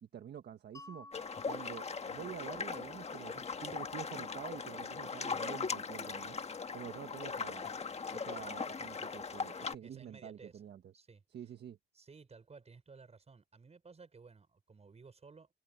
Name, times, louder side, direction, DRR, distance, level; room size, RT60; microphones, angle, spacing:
voice 1, 0.0-1.1 1.4-6.4 6.7-7.7 8.1-10.8 11.3-11.8, right 9 dB, 60° right, 1.6 m, -47 dB
Mallet percussion, 0.7-6.1, left 2 dB, 15° left, 6.3 m, -59 dB
sound 1, 1.1-9.7, left 5 dB, 35° left, 1.5 m, -40 dB
voice 2, 9.8-10.6 10.9-11.2 11.9-15.5, right 4 dB, 30° right, 5.9 m, -56 dB
cardioid pair, 90°, 20 cm